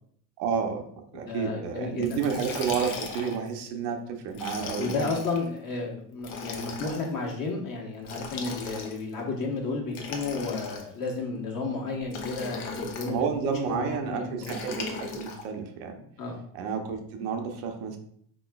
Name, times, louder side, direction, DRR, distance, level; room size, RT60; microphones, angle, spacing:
voice 1, 0.4-0.8 1.1-5.1 13.1-15.9 16.5-18.0, right 6 dB, 80° right, 4 dB, 0.7 m, -30 dB
voice 2, 1.1-2.2 4.7-12.6 12.9-13.3 13.6-14.5 16.2-16.4, left 3 dB, 45° left, 0 dB, 1.1 m, -32 dB
Liquid, 2.0-3.5 4.3-5.4 6.2-7.1 8.0-9.1 9.9-11.1 12.1-13.2 14.4-15.4, left 4 dB, 75° left, 0.8 m, -37 dB
3.6 x 3.0 x 2.2 m, 0.64 s
supercardioid pair, 65°, 47 cm